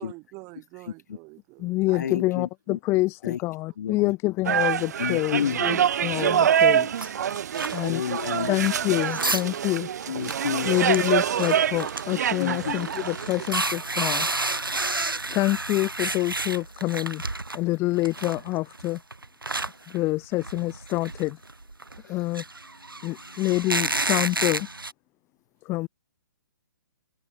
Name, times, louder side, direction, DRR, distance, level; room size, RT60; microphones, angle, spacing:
voice 1, 0.0-2.3, right 29 dB, 25° right, 3.2 m, -45 dB
voice 2, 0.9-1.2 1.9-2.8 3.2-3.4 3.8-4.1 5.0-5.7 7.9-8.5 10.1-10.7 12.4-12.8 22.1-22.2 23.3-23.4, left 8 dB, 55° left, 2.4 m, -31 dB
voice 3, 1.6-7.1 7.7-8.0 8.5-9.9 10.6-14.3 15.3-17.2 17.5-19.0 19.9-21.4 22.1-22.4 23.0-24.7 25.6-25.9, left 20 dB, 20° left, 1.0 m, -26 dB
sound 1, 4.5-14.2, right 9 dB, 50° right, 0.5 m, -26 dB
sound 2, 7.0-9.6 9.9-10.0 10.2-17.6 18.0-24.9, right 2 dB, 85° right, 1.5 m, -31 dB
figure-of-eight pair, 130°, 11 cm